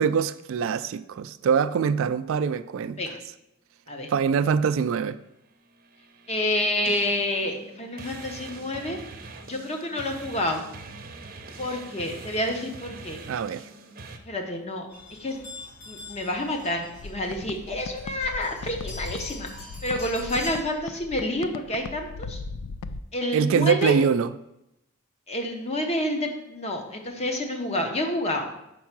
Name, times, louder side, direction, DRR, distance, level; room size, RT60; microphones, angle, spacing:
voice 1, 0.0-3.0 4.1-5.2 11.7-11.8 13.3-13.7 23.3-24.3, right 6 dB, 65° right, 0.3 m, -24 dB
sound 1, 5.8-14.2, right 3 dB, 45° right, 0.7 m, -43 dB
voice 2, 6.3-9.0 9.5-10.6 11.6-13.2 14.3-14.9 15.2-15.4 15.9-19.5 19.8-22.4 23.1-24.0 25.3-28.4, left 1 dB, 30° left, 0.9 m, -28 dB
sound 2, 14.9-20.6, left 3 dB, 70° left, 2.7 m, -44 dB
sound 3, 16.9-23.0, left 4 dB, 85° left, 0.4 m, -38 dB
5.5 x 4.6 x 5.9 m
head